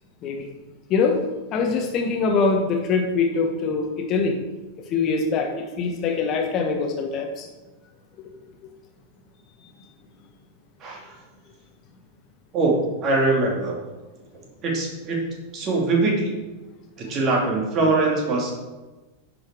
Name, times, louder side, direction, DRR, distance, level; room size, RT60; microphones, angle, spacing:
voice 1, 0.9-1.2 1.5-4.4 4.9-7.5, left 4 dB, 35° left, 2 dB, 1.2 m, -23 dB
voice 2, 12.5-13.8 14.6-15.2 15.5-16.3 17.0-18.5, right 3 dB, 35° right, -1 dB, 2.6 m, -22 dB
10.5 x 5.5 x 4.8 m, 1.2 s
figure-of-eight pair, 90°, 0 cm